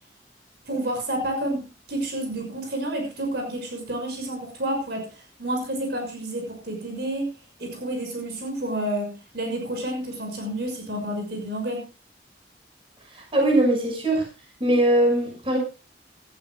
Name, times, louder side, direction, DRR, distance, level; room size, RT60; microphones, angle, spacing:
voice 1, 0.6-7.3 7.6-11.8, right 1 dB, 65° right, 3 dB, 6.2 m, -30 dB
voice 2, 13.1-14.3 14.6-15.6, right 1 dB, 30° right, 2 dB, 6.1 m, -21 dB
18.5 x 14.5 x 2.4 m, 0.31 s
head